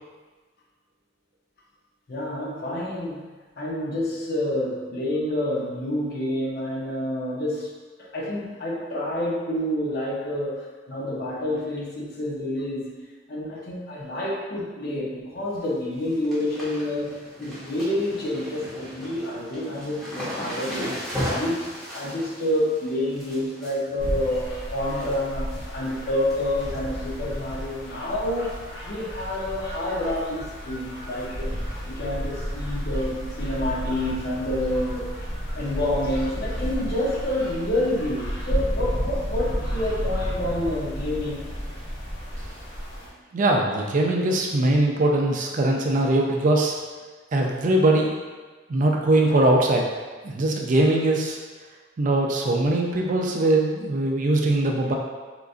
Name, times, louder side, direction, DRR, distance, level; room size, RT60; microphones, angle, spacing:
voice 1, 2.1-3.3 3.6-7.7 8.1-12.9 13.3-17.1 17.4-28.5 28.8-31.5 31.9-35.1 35.5-41.6, left 1 dB, 55° left, -3 dB, 0.6 m, -28 dB
sound 1, 15.4-15.7 15.9-25.2 25.5-25.9 26.2-27.1 27.4-27.5 28.5-28.7 29.0-29.1 29.5-29.6 31.2-31.3 32.0-32.1, equal, ahead, 0.8 m, -36 dB
sound 2, 24.0-43.1, equal, 70° left, 1.0 m, -32 dB
voice 2, 43.3-46.7 47.3-48.1 48.7-49.9 50.2-51.4 52.0-54.9, right 2 dB, 40° right, 0 dB, 0.4 m, -21 dB
3.7 x 2.4 x 2.4 m, 1.3 s
head